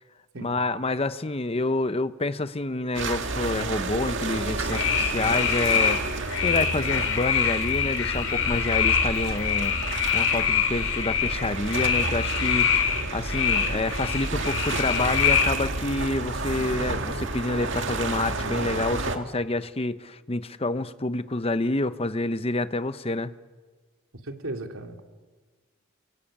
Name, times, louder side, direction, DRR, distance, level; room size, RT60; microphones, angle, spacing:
voice 1, 0.4-6.0 6.4-9.8 10.1-12.9 13.1-23.3, left 2 dB, 30° left, 12 dB, 0.8 m, -28 dB
sound 1, 2.9-19.2, right 2 dB, 60° right, 2.1 m, -31 dB
sound 2, 4.4-15.6, left 7 dB, 90° left, 4.4 m, -25 dB
voice 2, 24.2-25.0, right 2 dB, 85° right, 4 dB, 2.8 m, -36 dB
29.0 x 23.0 x 8.8 m, 1.4 s
head